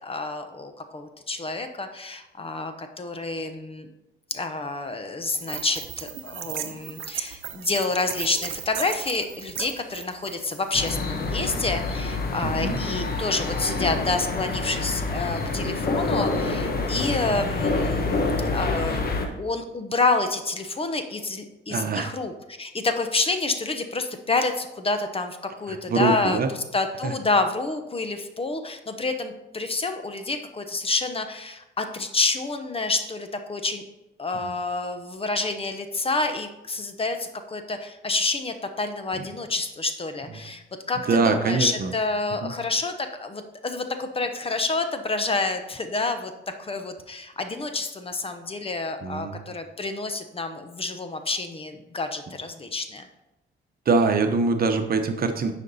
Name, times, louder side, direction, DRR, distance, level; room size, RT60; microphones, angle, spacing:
voice 1, 0.0-3.9 4.3-18.2 18.5-19.0 19.4-22.3 22.6-26.4 26.7-33.8 34.2-46.3 46.6-53.1, left 3 dB, 30° left, 7 dB, 0.9 m, -28 dB
sound 1, 5.3-10.9, right 10 dB, 75° right, 0.8 m, -36 dB
Distant Fireworks, 10.7-19.3, left 3 dB, 50° left, 1.3 m, -27 dB
voice 2, 12.4-12.8 21.7-22.1 25.7-26.5 27.0-27.1 34.4-34.5 39.1-39.3 40.3-40.4 41.1-41.9 42.4-42.5 49.0-49.4 53.9-55.5, right 4 dB, 50° right, 6 dB, 1.0 m, -24 dB
9.7 x 5.2 x 4.1 m, 0.93 s
cardioid pair, 90°, 20 cm